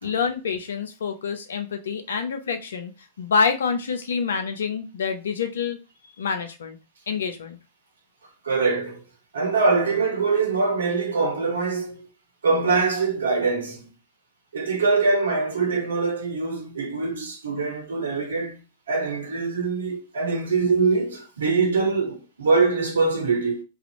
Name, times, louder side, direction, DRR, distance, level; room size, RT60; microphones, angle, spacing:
voice 1, 0.0-2.9 3.2-5.8 6.2-6.8 7.1-7.6, left 5 dB, 70° left, 0.5 m, -26 dB
voice 2, 8.4-9.0 9.3-12.1 12.4-13.9 14.5-18.6 18.9-23.6, right 4 dB, 75° right, 0.8 m, -23 dB
2.5 x 2.4 x 2.8 m
figure-of-eight pair, 95°, 0 cm